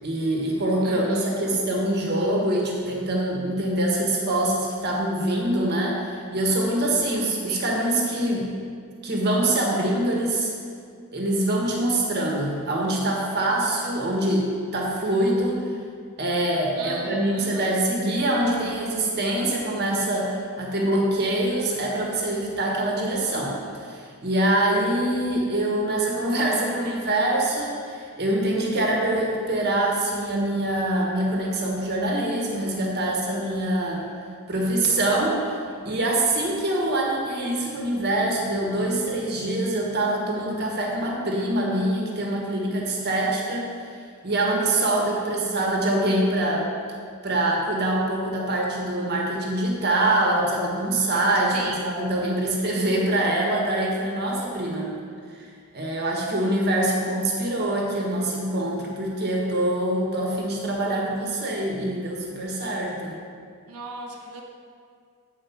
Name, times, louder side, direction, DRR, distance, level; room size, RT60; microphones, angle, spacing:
voice 1, 0.0-8.5 9.0-10.5 11.1-15.7 16.2-23.6 23.9-34.0 34.5-35.5 35.8-43.8 44.2-46.7 47.2-54.9 55.3-55.5 55.7-63.2, right 1 dB, 45° right, -2 dB, 1.4 m, -24 dB
voice 2, 0.8-1.6 7.5-7.7 16.8-17.7 51.5-51.8 63.7-64.4, right 3 dB, 80° right, 1 dB, 1.0 m, -37 dB
8.9 x 4.6 x 5.8 m, 2.2 s
head